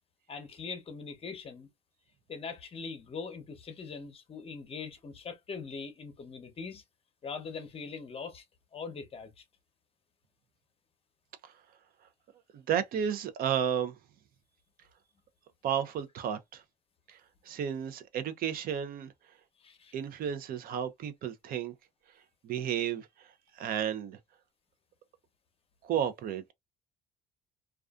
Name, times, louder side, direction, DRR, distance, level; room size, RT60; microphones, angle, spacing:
voice 1, 0.3-1.7 2.3-6.8 7.2-8.4 8.7-9.4 19.6-19.9, left 5 dB, 35° left, 0.7 m, -42 dB
voice 2, 12.5-14.0 15.6-16.6 17.1-17.2 17.4-19.1 19.9-21.7 22.4-24.2 25.8-26.5, right 9 dB, 60° right, 0.5 m, -32 dB
2.4 x 2.3 x 2.3 m
cardioid pair, 110°, 17 cm